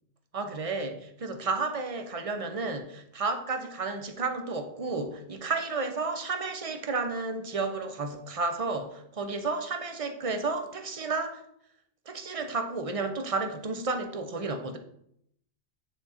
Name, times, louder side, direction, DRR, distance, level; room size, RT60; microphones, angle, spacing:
voice 1, 0.3-11.4 12.1-14.8, right 3 dB, 35° right, 7 dB, 0.6 m, -32 dB
9.1 x 3.7 x 4.2 m, 0.73 s
omnidirectional pair, 1.2 m